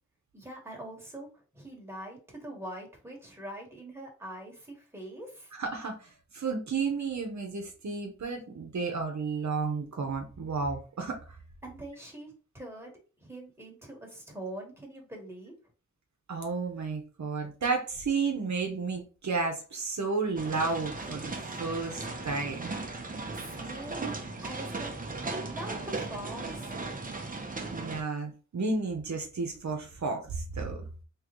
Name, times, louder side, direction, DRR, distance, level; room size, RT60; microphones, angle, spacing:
voice 1, 0.3-5.5 11.6-12.9 13.2-15.5 23.1-24.9 25.4-26.7, right 1 dB, 10° right, -1 dB, 1.4 m, -43 dB
voice 2, 5.5-11.4 16.3-21.3 21.6-23.1 27.7-30.8, right 4 dB, 65° right, 3 dB, 0.8 m, -32 dB
sound 1, 20.4-28.0, right 3 dB, 25° right, 0.6 m, -37 dB
3.7 x 3.0 x 3.0 m, 0.35 s
wide cardioid pair, 115°, 31 cm